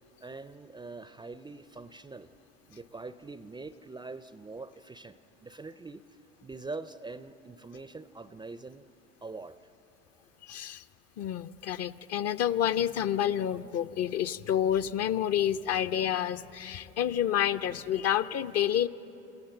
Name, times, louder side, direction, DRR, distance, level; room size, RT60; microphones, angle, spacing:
voice 1, 0.2-2.3 2.7-6.0 6.4-8.9 9.2-9.6, right 3 dB, 10° right, 14 dB, 0.5 m, -43 dB
voice 2, 10.4-10.8 11.2-18.9, left 10 dB, 40° left, 13 dB, 0.6 m, -29 dB
28.0 x 16.0 x 7.7 m, 3.0 s
hypercardioid pair, 70°, 37 cm